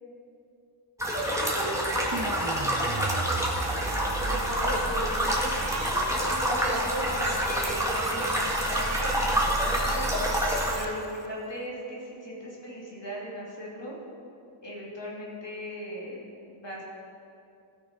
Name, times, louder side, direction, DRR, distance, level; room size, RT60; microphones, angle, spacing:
sound 1, 1.0-10.7, equal, 5° right, 2.0 m, -27 dB
voice 1, 1.1-3.3 4.2-5.1 6.1-10.1 10.7-14.0 14.6-16.8, equal, 60° left, -5 dB, 2.9 m, -38 dB
sound 2, 2.1-11.2, right 3 dB, 35° right, 0.6 m, -35 dB
16.0 x 6.2 x 5.0 m, 2.6 s
wide cardioid pair, 55°, 49 cm